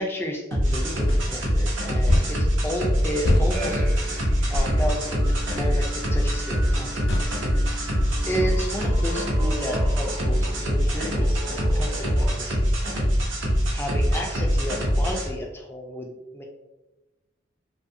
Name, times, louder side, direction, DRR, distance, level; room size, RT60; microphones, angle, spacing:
voice 1, 0.0-7.0 7.3-7.6 8.3-13.1 13.4-16.4, equal, 10° left, 0 dB, 0.3 m, -33 dB
sound 1, 0.5-15.3, equal, 75° right, 0.7 m, -24 dB
sound 2, 1.1-1.2 2.1-2.3 3.2-3.5 4.5-4.7 5.5-5.7 7.1-7.3, left 1 dB, 70° left, 0.5 m, -23 dB
sound 3, 3.5-12.4, left 1 dB, 35° right, 0.6 m, -38 dB
2.6 x 2.5 x 2.6 m, 1.0 s
head